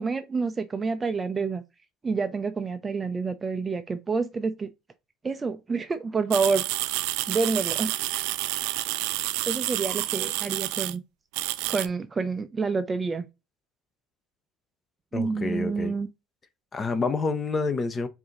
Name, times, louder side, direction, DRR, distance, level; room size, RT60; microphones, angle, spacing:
voice 1, 0.0-1.6 2.0-4.7 5.2-6.7 7.3-8.0 9.5-11.0 11.7-13.2 15.1-16.1, right 4 dB, 20° right, 0.5 m, -28 dB
sound 1, 6.3-10.9 11.3-11.9, right 17 dB, 80° right, 0.4 m, -29 dB
voice 2, 15.1-15.9 16.7-18.1, left 4 dB, 20° left, 0.7 m, -28 dB
4.8 x 2.7 x 3.7 m
cardioid pair, 135°, 0 cm